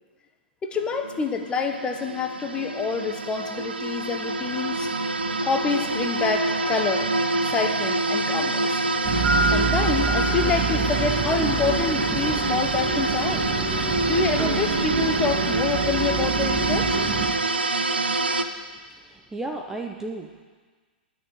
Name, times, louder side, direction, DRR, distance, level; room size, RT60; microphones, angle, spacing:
voice 1, 0.6-4.9 5.4-8.7 9.5-13.5 14.1-17.1, left 5 dB, 15° left, 5 dB, 1.0 m, -27 dB
sound 1, 0.7-18.4, right 2 dB, 75° right, 0.7 m, -26 dB
sound 2, 9.0-17.3, right 4 dB, 40° right, 1.9 m, -26 dB
voice 2, 18.9-20.4, right 2 dB, 10° right, 2 dB, 0.7 m, -34 dB
10.5 x 6.5 x 8.9 m, 1.5 s
figure-of-eight pair, 105°, 6 cm